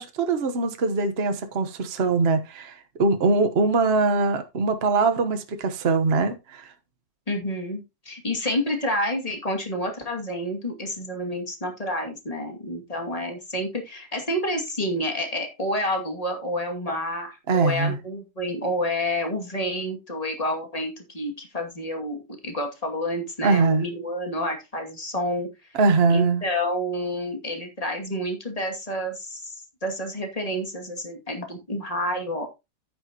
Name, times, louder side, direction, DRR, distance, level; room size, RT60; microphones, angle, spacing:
voice 1, 0.0-6.7 17.5-18.0 23.4-23.8 25.8-26.4, right 3 dB, 40° right, 1.3 m, -22 dB
voice 2, 7.3-25.5 26.1-29.5 29.8-32.5, left 1 dB, 20° left, 2.4 m, -29 dB
10.5 x 9.5 x 2.9 m
omnidirectional pair, 1.9 m